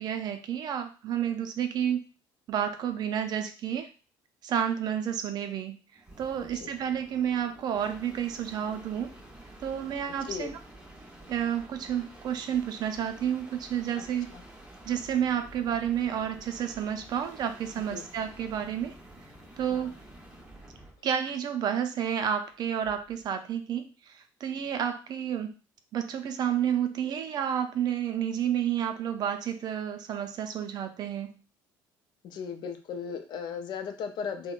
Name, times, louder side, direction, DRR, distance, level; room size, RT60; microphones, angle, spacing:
voice 1, 0.0-2.1 2.5-3.9 4.4-5.8 6.2-9.1 9.6-10.6 11.3-14.3 14.8-18.9 19.6-19.9 21.0-25.5 25.9-31.4, right 9 dB, 50° right, 7 dB, 0.5 m, -30 dB
sound 1, 5.9-21.0 22.8-23.2, right 1 dB, 10° right, 1.1 m, -50 dB
voice 2, 14.0-14.4 17.9-18.1 19.7-19.9 32.2-34.5, left 6 dB, 55° left, 7 dB, 0.5 m, -37 dB
3.5 x 2.1 x 2.4 m, 0.35 s
supercardioid pair, 95°, 9 cm